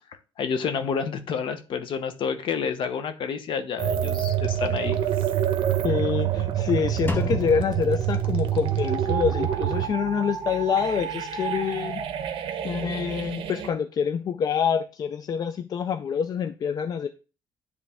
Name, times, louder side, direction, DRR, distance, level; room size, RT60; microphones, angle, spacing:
voice 1, 0.4-5.0, left 6 dB, 60° left, 0.9 m, -29 dB
sound 1, 3.8-13.7, right 10 dB, 65° right, 0.9 m, -27 dB
voice 2, 5.8-12.1 12.6-17.1, left 7 dB, 45° left, 0.4 m, -26 dB
Drum, 7.1-9.0, left 4 dB, 20° left, 0.8 m, -34 dB
10.0 x 3.3 x 3.5 m
cardioid pair, 125°, 10 cm